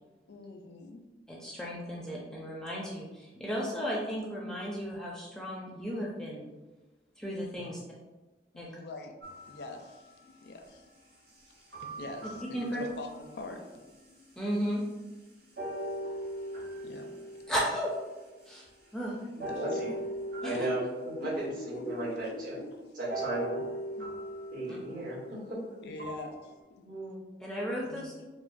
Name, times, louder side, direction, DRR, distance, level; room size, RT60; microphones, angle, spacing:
voice 1, 0.3-1.0 8.5-9.2 9.5-10.1 10.4-10.9 11.8-13.7 16.8-17.1 19.4-19.8 20.5-20.6 21.2-22.8 24.0-24.1 24.7-24.8 25.3-25.4 25.8-26.8 27.8-28.1, left 2 dB, 70° left, 4 dB, 0.5 m, -43 dB
voice 2, 1.3-6.5 7.2-7.8 8.6-8.7 12.5-12.8 14.4-14.8 17.5-18.0 18.5-18.7 18.9-19.2 20.4-20.7 24.7-24.8 27.4-28.1, equal, 5° left, -4 dB, 0.4 m, -34 dB
sound 1, 9.2-10.3 11.7-13.4 14.1-14.2 15.6-18.5 19.4-22.0 23.1-26.6, right 1 dB, 75° right, 1.1 m, -40 dB
voice 3, 19.3-19.9 20.4-20.8 21.2-22.6 23.0-23.6 24.5-25.6 26.8-27.2, right 2 dB, 50° right, -7 dB, 1.3 m, -35 dB
5.0 x 2.1 x 2.5 m, 1.2 s
head